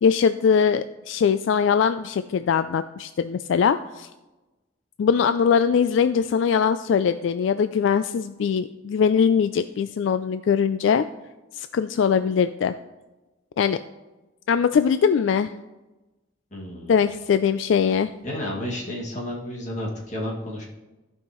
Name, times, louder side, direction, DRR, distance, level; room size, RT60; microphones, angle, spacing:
voice 1, 0.0-4.1 5.0-11.1 11.6-12.8 13.6-13.8 14.5-15.5 16.9-18.1, left 6 dB, 70° left, 11 dB, 0.3 m, -21 dB
voice 2, 16.5-17.0 18.2-20.7, left 1 dB, 40° left, -3 dB, 2.1 m, -31 dB
14.5 x 5.6 x 3.0 m, 1.1 s
head